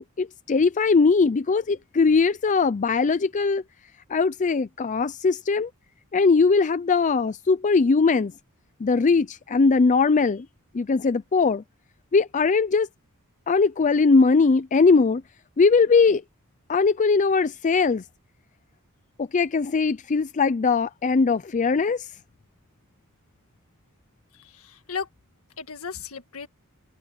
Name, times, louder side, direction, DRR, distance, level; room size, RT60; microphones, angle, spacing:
voice 1, 0.0-3.6 4.1-5.7 6.1-8.3 8.8-10.5 10.7-11.6 12.1-12.9 13.5-15.2 15.6-16.2 16.7-18.0 19.2-22.1, left 4 dB, 35° left, 0.4 m, -20 dB
voice 2, 24.3-25.1 25.6-26.5, left 6 dB, 70° left, 1.8 m, -35 dB
head